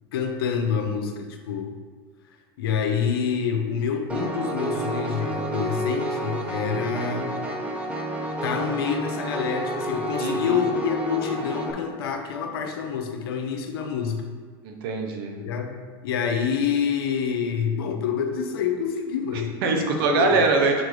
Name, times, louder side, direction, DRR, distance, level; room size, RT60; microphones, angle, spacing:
voice 1, 0.1-1.8 2.6-7.3 8.4-14.3 15.3-15.8 16.0-20.4, left 7 dB, 80° left, 4 dB, 0.8 m, -27 dB
Piano, 4.1-11.7, right 1 dB, 10° right, 0.9 m, -30 dB
voice 2, 10.2-10.6 14.6-15.3 19.6-20.7, right 4 dB, 70° right, 3 dB, 1.0 m, -22 dB
6.5 x 4.6 x 3.3 m, 1.5 s
supercardioid pair, 110°, 12 cm